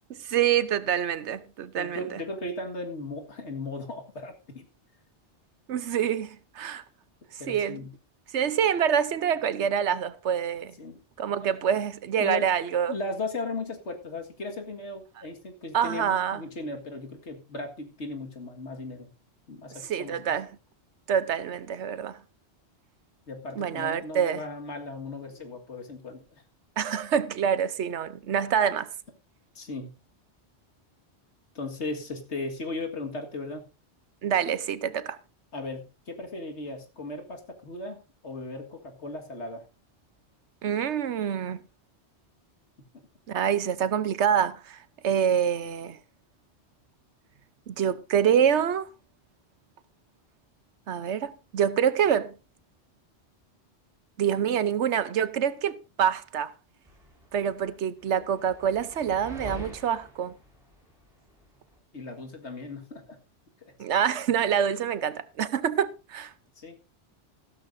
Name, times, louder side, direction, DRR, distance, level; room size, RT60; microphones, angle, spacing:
voice 1, 0.1-2.2 5.7-6.8 7.5-7.8 8.3-10.7 11.2-12.9 15.7-16.4 19.9-20.5 21.1-22.2 23.6-24.4 26.8-28.9 34.2-35.2 40.6-41.6 43.3-44.8 45.0-46.0 47.7-48.9 50.9-52.3 54.2-56.5 57.3-60.3 63.8-66.3, right 8 dB, 85° right, 1.1 m, -26 dB
voice 2, 1.8-4.6 7.4-7.9 10.8-11.0 11.4-11.7 12.2-12.5 12.8-19.1 19.5-20.2 23.3-26.4 29.6-30.0 31.5-33.7 35.5-39.7 61.9-63.2 66.6-66.8, left 2 dB, 85° left, 2.2 m, -37 dB
sound 1, 56.9-61.7, equal, 5° right, 5.6 m, -45 dB
15.0 x 12.5 x 2.7 m
omnidirectional pair, 1.1 m